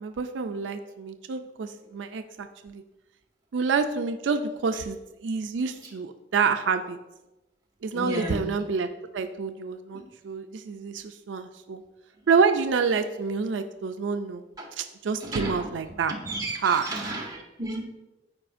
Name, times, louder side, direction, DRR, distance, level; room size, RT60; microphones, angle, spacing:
voice 1, 0.0-2.8 3.5-7.0 7.8-8.9 9.1-11.8 12.3-14.4 14.7-16.1 16.6-17.1, right 5 dB, 85° right, 8 dB, 0.4 m, -28 dB
voice 2, 7.9-8.4 9.9-10.0 14.6-14.7 15.2-15.7 16.2-17.8, right 1 dB, 20° right, -2 dB, 1.6 m, -33 dB
13.5 x 4.8 x 2.6 m, 1.0 s
head